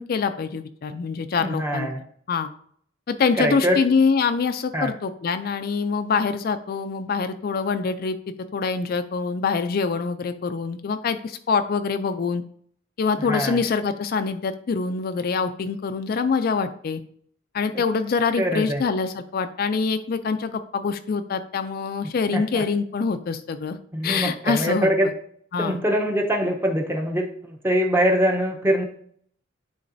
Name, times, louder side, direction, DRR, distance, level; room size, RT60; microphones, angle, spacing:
voice 1, 0.0-1.9 2.3-2.5 3.1-8.2 8.5-12.4 13.0-17.0 17.5-23.8 24.0-24.9 25.5-25.8, left 5 dB, 50° left, 9 dB, 0.4 m, -25 dB
voice 2, 1.4-2.0 3.4-3.8 4.7-4.9 13.3-13.6 18.4-18.8 22.3-22.6 23.9-25.1 25.6-28.8, equal, 10° right, 1 dB, 0.8 m, -23 dB
9.6 x 3.8 x 2.6 m, 0.62 s
head